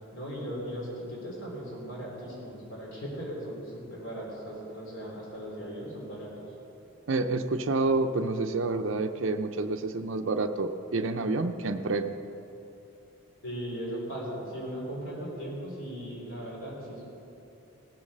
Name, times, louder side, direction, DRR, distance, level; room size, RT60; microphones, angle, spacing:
voice 1, 0.1-6.5 13.4-17.1, equal, 60° left, -3 dB, 3.8 m, -38 dB
voice 2, 7.1-12.1, right 3 dB, 60° right, 6 dB, 0.5 m, -28 dB
18.0 x 7.2 x 6.6 m, 2.9 s
head